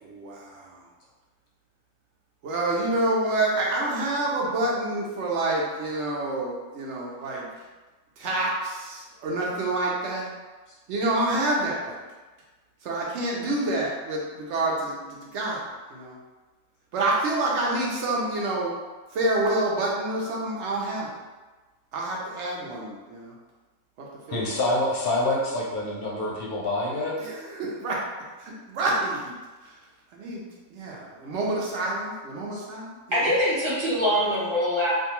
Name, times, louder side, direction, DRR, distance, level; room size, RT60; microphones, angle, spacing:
voice 1, 0.0-0.8 2.4-7.5 8.2-10.3 10.9-12.0 12.8-16.2 16.9-18.7 19.1-21.1 21.9-23.3 24.0-24.4 27.2-28.0 28.4-29.3 29.6-29.7 30.1-33.3 34.1-34.5, right 2 dB, 65° right, -3 dB, 0.9 m, -28 dB
voice 2, 24.3-27.2 32.5-32.6, left 1 dB, 55° left, -5 dB, 0.7 m, -26 dB
voice 3, 33.1-34.9, equal, 25° right, -10 dB, 0.8 m, -23 dB
2.6 x 2.3 x 2.9 m, 1.2 s
omnidirectional pair, 1.4 m